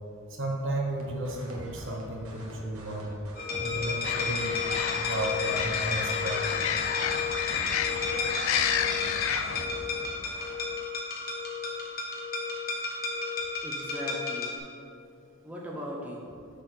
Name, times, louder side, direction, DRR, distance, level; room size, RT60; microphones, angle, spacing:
voice 1, 0.3-3.1 3.6-4.6 4.9-6.4 8.1-8.5, right 1 dB, 60° right, 0 dB, 1.2 m, -34 dB
sound 1, 0.9-10.5, right 1 dB, 90° right, 1.3 m, -45 dB
sound 2, 3.4-14.6, left 4 dB, 45° left, 1.2 m, -32 dB
sound 3, 4.0-9.7, left 9 dB, 65° left, 0.4 m, -31 dB
voice 2, 13.6-14.6 15.4-16.5, equal, 5° right, -3 dB, 0.7 m, -39 dB
6.6 x 4.1 x 6.5 m, 2.5 s
head